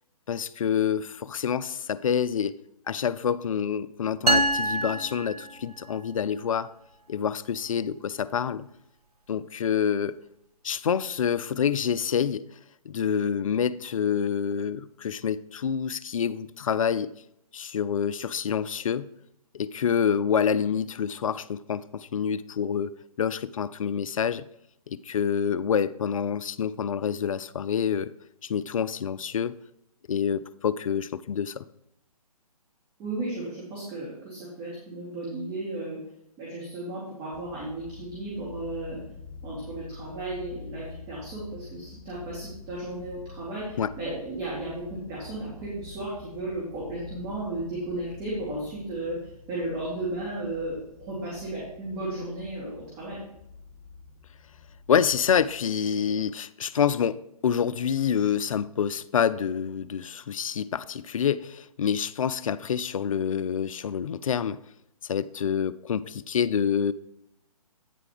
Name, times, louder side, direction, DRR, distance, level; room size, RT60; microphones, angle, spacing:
voice 1, 0.3-2.6 2.9-6.7 7.1-8.6 9.3-10.2 10.6-12.4 12.9-17.1 17.5-19.1 19.5-22.9 23.2-24.4 24.9-28.1 28.4-29.5 30.1-31.6 43.8-43.9 54.9-64.6 65.1-66.9, left 7 dB, 60° left, 0.4 m, -27 dB
sound 1, 4.3-6.0, right 2 dB, 75° right, 0.8 m, -26 dB
voice 2, 33.0-36.0 36.4-39.0 39.4-53.2, right 2 dB, 20° right, 2.3 m, -34 dB
sound 2, 37.3-55.5, left 4 dB, 15° left, 2.0 m, -46 dB
9.2 x 4.8 x 5.0 m
figure-of-eight pair, 140°, 20 cm